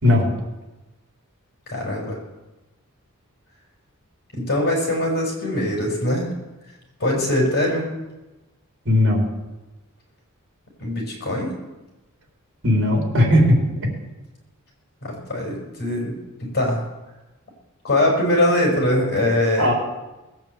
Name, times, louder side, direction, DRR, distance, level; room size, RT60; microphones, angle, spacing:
voice 1, 1.7-2.2 4.3-6.3 7.0-7.9 10.8-11.5 15.0-16.8 17.8-19.7, left 1 dB, 50° left, -1 dB, 5.9 m, -22 dB
voice 2, 8.9-9.3 12.6-13.6 19.6-19.7, left 1 dB, 60° right, 0 dB, 4.0 m, -17 dB
19.5 x 9.1 x 8.0 m, 1.1 s
head